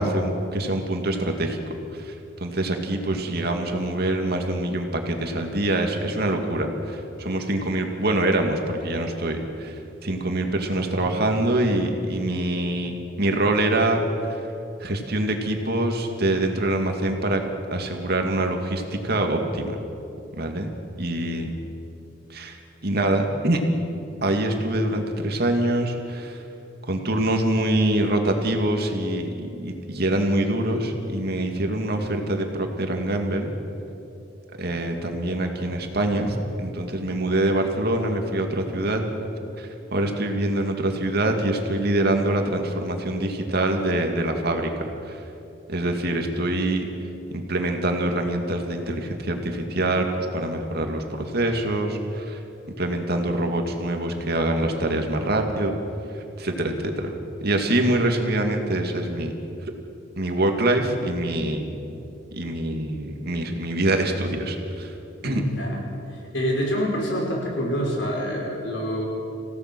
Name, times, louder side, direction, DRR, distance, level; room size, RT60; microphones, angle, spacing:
voice 1, 0.0-1.6 1.9-14.4 14.8-17.4 17.7-19.8 20.3-20.7 21.0-21.6 22.3-23.6 24.2-26.4 26.9-33.5 34.6-39.0 39.6-44.7 45.0-45.2 45.7-46.8 47.3-50.1 50.3-52.4 52.8-55.7 56.1-57.1 57.4-59.3 60.2-61.7 62.3-64.9 65.2-65.4, right 1 dB, 55° right, 4 dB, 2.4 m, -25 dB
voice 2, 65.2-65.8 66.3-69.0, equal, 75° left, -1 dB, 5.8 m, -26 dB
27.5 x 17.0 x 6.2 m, 2.7 s
head